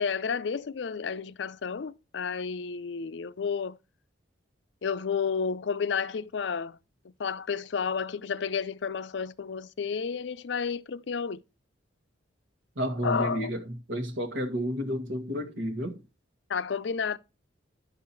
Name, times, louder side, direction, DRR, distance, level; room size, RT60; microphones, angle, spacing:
voice 1, 0.0-3.8 4.8-6.8 7.2-11.4 13.0-13.5 16.5-17.2, left 6 dB, 65° left, 0.5 m, -31 dB
voice 2, 12.8-16.0, equal, 80° right, 1.8 m, -31 dB
10.5 x 5.7 x 4.4 m
head